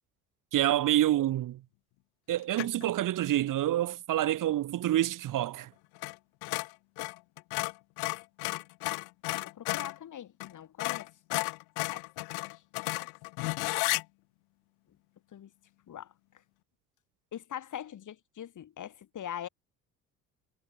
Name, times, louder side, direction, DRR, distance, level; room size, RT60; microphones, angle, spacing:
voice 1, 0.5-1.6 2.3-5.7, right 13 dB, 50° right, 1.5 m, -27 dB
sound 1, 2.5-2.9 6.0-6.2 6.4-10.0 10.4-10.5 10.8-14.0, left 28 dB, 65° left, 1.6 m, -33 dB
voice 2, 9.6-11.1 11.9-12.1 12.5-12.6 13.0-13.1 15.3-15.5 15.9-16.1 17.3-19.5, left 10 dB, 45° left, 3.6 m, -42 dB
hypercardioid pair, 55°, 41 cm